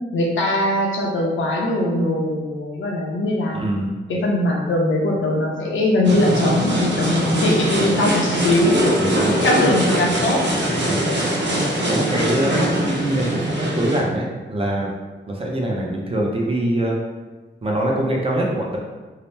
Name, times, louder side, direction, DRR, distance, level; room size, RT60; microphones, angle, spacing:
voice 1, 0.1-3.6 4.1-8.8 9.4-10.4, left 1 dB, 85° left, -1 dB, 0.6 m, -21 dB
voice 2, 3.5-3.9 9.0-9.3 9.6-9.7 10.9-11.0 11.9-14.9 15.3-17.0 17.6-18.8, right 1 dB, 30° right, -2 dB, 0.5 m, -23 dB
sound 1, 6.0-14.0, right 1 dB, 70° right, 0.8 m, -21 dB
2.8 x 2.0 x 3.2 m, 1.3 s
wide cardioid pair, 115°, 20 cm